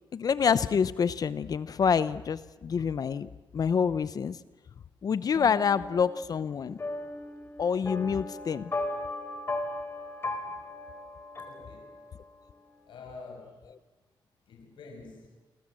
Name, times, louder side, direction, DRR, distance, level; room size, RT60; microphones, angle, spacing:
voice 1, 0.1-4.4 5.0-6.8 7.6-8.7, left 6 dB, 50° left, 15 dB, 0.8 m, -27 dB
sound 1, 5.3-12.3, left 2 dB, 30° left, 3.8 m, -37 dB
voice 2, 11.4-12.0 12.9-13.6 14.5-15.3, left 4 dB, 75° left, 3 dB, 5.9 m, -47 dB
28.5 x 24.5 x 7.7 m, 1.2 s
cardioid pair, 120°, 8 cm